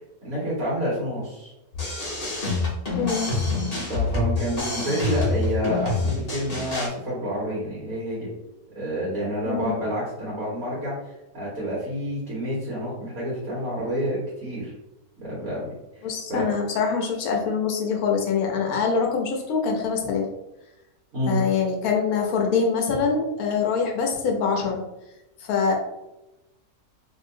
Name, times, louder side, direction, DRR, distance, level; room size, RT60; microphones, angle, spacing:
voice 1, 0.2-1.5 3.9-8.3 8.7-14.7 15.2-15.7 16.3-16.5 21.1-21.4, equal, 65° right, -7 dB, 1.6 m, -28 dB
sound 1, 1.7-6.9, left 3 dB, 30° left, 0.9 m, -26 dB
voice 2, 3.0-3.3 9.4-9.8 16.0-20.3 21.3-24.8 25.4-25.7, left 5 dB, 75° left, 0 dB, 1.1 m, -24 dB
3.1 x 2.7 x 2.6 m, 0.98 s
omnidirectional pair, 1.6 m